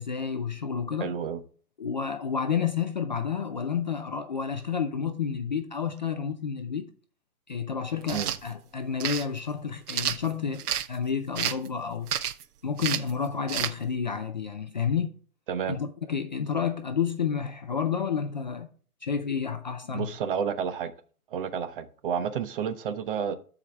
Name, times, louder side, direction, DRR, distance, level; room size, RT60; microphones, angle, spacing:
voice 1, 0.0-1.1 1.8-6.9 7.5-12.1 12.6-15.1 15.7-18.7 19.0-20.1, left 6 dB, 35° left, 0.4 m, -30 dB
voice 2, 1.0-1.4 8.1-8.3 15.5-15.8 19.9-20.9 21.3-23.4, right 7 dB, 35° right, 0.8 m, -30 dB
sound 1, 8.0-8.4 9.0-9.3 9.9-10.9 11.4-11.7 12.1-12.4 12.8-13.1 13.5-13.7, right 9 dB, 80° right, 0.8 m, -29 dB
13.0 x 4.9 x 3.3 m
hypercardioid pair, 140°, 45 cm